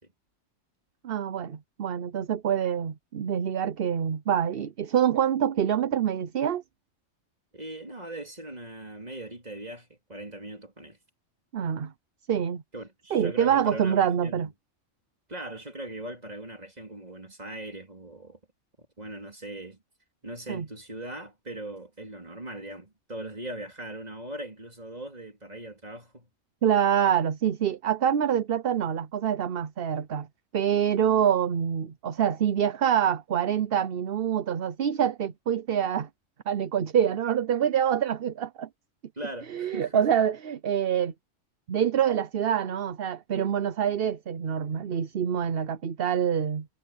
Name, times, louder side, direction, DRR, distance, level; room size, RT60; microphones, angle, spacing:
voice 1, 1.0-6.6 11.5-11.9 12.3-12.6 13.1-14.5 20.5-20.7 26.6-30.3 30.5-36.1 36.5-38.7 39.5-41.1 41.7-46.7, right 9 dB, 55° right, 0.9 m, -26 dB
voice 2, 7.5-11.0 12.7-14.5 15.3-18.4 19.0-19.8 20.2-26.3 39.2-40.1, right 1 dB, 30° right, 3.6 m, -40 dB
omnidirectional pair, 1.3 m